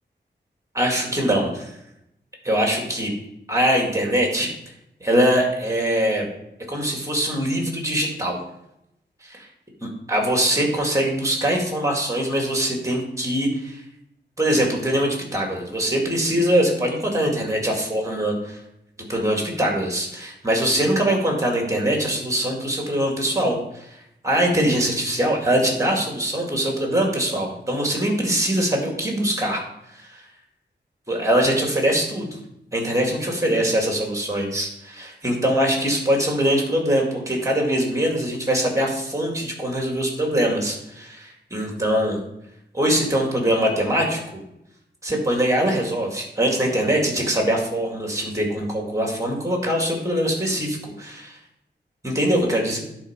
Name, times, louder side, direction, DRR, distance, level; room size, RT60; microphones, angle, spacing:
voice 1, 0.7-1.7 2.4-3.1 3.5-4.5 5.0-6.3 6.7-8.4 9.2-9.5 9.8-13.8 14.4-18.6 19.0-24.0 24.2-29.6 29.9-30.2 31.1-32.4 32.7-42.2 42.7-44.4 45.0-51.4 52.0-52.8, right 1 dB, 15° right, 0 dB, 2.3 m, -22 dB
10.5 x 4.5 x 5.2 m, 0.82 s
wide cardioid pair, 90°, 19 cm